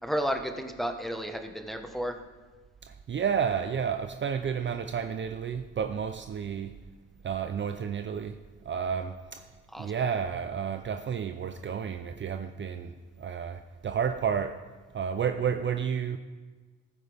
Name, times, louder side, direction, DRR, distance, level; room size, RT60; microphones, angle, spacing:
voice 1, 0.0-2.1 9.7-9.9, equal, ahead, 1.2 m, -32 dB
voice 2, 2.9-6.7 7.2-9.5 9.8-14.6 14.9-16.2, right 7 dB, 40° right, 0.5 m, -31 dB
15.0 x 11.5 x 3.5 m
cardioid pair, 90°, 30 cm